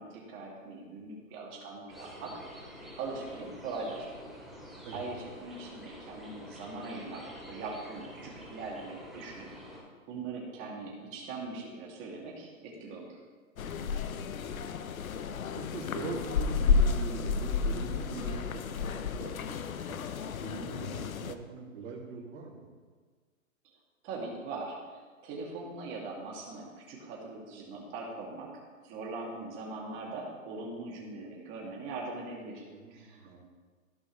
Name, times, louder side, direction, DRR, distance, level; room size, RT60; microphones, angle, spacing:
voice 1, 0.0-2.6 3.0-4.3 4.9-9.8 10.1-13.2 24.0-28.5 28.8-33.4, right 3 dB, 30° right, -2 dB, 2.6 m, -41 dB
sound 1, 1.9-9.8, equal, ahead, 2.9 m, -48 dB
sound 2, 13.6-21.3, left 5 dB, 80° left, 0.8 m, -31 dB
voice 2, 13.7-14.6 15.5-20.0 20.4-22.7 32.7-33.4, right 4 dB, 60° right, -4 dB, 2.9 m, -42 dB
15.0 x 5.4 x 3.3 m, 1.5 s
hypercardioid pair, 135°, 41 cm